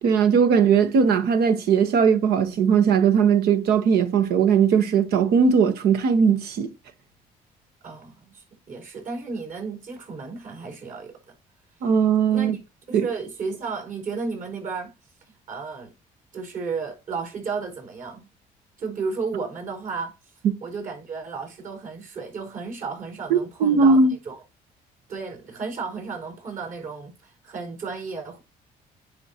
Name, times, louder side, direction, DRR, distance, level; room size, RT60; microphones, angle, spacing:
voice 1, 0.0-6.7 11.8-12.5 12.9-13.1 23.3-24.1, right 6 dB, 75° right, 1.2 m, -19 dB
voice 2, 7.8-11.2 12.3-12.5 12.9-14.9 15.5-15.9 16.3-18.3 18.8-20.1 20.6-24.4 25.1-28.4, right 4 dB, 55° right, 4.7 m, -33 dB
9.8 x 5.3 x 2.9 m
cardioid pair, 85°, 16 cm